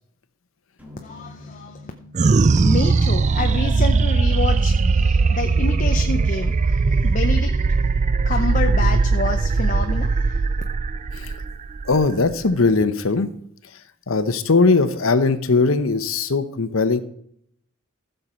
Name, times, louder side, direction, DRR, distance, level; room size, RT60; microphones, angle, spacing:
sound 1, 0.8-5.1, left 2 dB, 10° right, 1.8 m, -47 dB
voice 1, 1.0-1.9 2.6-7.8 8.1-10.4, left 3 dB, 40° left, 5 dB, 0.7 m, -28 dB
sound 2, 2.1-12.8, right 4 dB, 35° right, 0.4 m, -19 dB
voice 2, 11.9-13.3 14.1-17.0, left 3 dB, 90° left, 12 dB, 0.9 m, -19 dB
15.0 x 6.7 x 4.4 m, 0.70 s
head